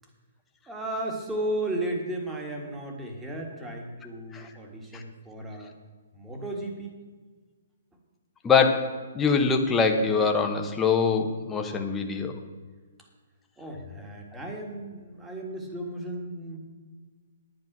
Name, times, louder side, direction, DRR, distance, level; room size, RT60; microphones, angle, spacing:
voice 1, 0.7-5.7 6.1-7.0 13.6-16.6, right 1 dB, 10° right, 1 dB, 1.7 m, -34 dB
voice 2, 8.4-12.4, left 5 dB, 10° left, 4 dB, 1.0 m, -24 dB
11.0 x 9.2 x 6.0 m, 1.4 s
hypercardioid pair, 165°, 0 cm